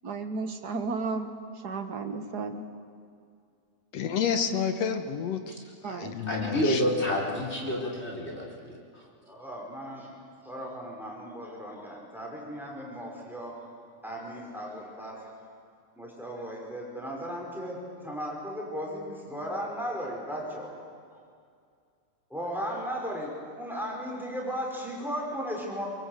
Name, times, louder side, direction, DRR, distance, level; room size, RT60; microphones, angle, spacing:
voice 1, 0.0-2.7 5.8-6.2, right 4 dB, 45° right, 7 dB, 1.5 m, -34 dB
voice 2, 3.9-5.4 5.9-6.8, left 7 dB, 65° left, 8 dB, 2.1 m, -29 dB
voice 3, 6.3-9.0, equal, 20° left, -2 dB, 4.1 m, -29 dB
voice 4, 9.2-10.1 10.4-13.6 14.0-15.2 16.0-20.7 22.3-23.3 23.6-25.9, equal, ahead, -2 dB, 5.3 m, -36 dB
24.0 x 23.0 x 8.3 m, 2.3 s
omnidirectional pair, 3.4 m